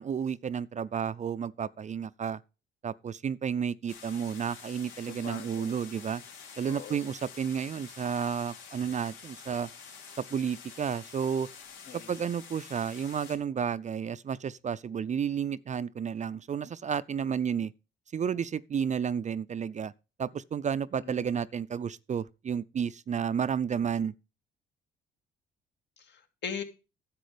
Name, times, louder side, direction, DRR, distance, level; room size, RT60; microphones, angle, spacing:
voice 1, 0.0-2.4 2.8-6.2 6.6-9.7 10.3-11.5 11.9-17.7 18.1-19.9 20.2-24.1, right 7 dB, 35° right, 0.5 m, -32 dB
sound 1, 3.9-13.4, left 6 dB, 85° left, 3.1 m, -48 dB
voice 2, 5.1-5.8 6.7-7.0 11.9-12.1 21.0-21.4 26.0-26.6, left 6 dB, 60° left, 2.3 m, -41 dB
10.5 x 7.6 x 5.0 m
cardioid pair, 90°, 20 cm